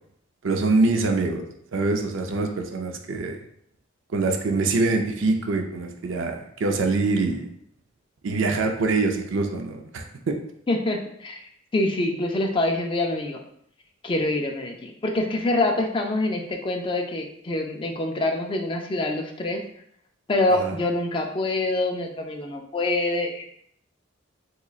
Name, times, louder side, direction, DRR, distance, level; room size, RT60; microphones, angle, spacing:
voice 1, 0.4-1.4 1.7-3.4 4.1-7.5 8.2-10.3 20.6-20.7, right 3 dB, 75° right, 4 dB, 0.4 m, -24 dB
voice 2, 10.7-11.4 11.7-13.4 14.0-19.6 20.3-23.4, left 2 dB, 25° left, 2 dB, 0.4 m, -25 dB
3.8 x 3.0 x 2.4 m, 0.68 s
head